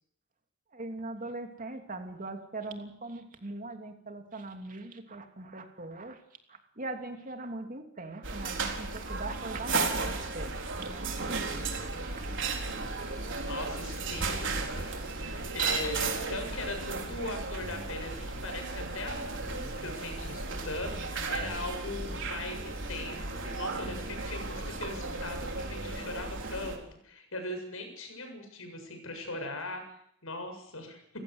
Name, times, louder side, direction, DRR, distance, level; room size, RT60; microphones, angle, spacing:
voice 1, 0.7-6.2 6.5-12.1, right 2 dB, 40° right, 5 dB, 3.0 m, -41 dB
sound 1, 8.2-26.8, right 3 dB, 60° right, 4.3 m, -35 dB
sound 2, 11.2-26.3, equal, 25° left, 6.8 m, -49 dB
voice 2, 13.4-29.8 30.2-31.0, left 2 dB, 75° left, 6 dB, 7.4 m, -40 dB
29.5 x 16.0 x 8.1 m, 0.70 s
head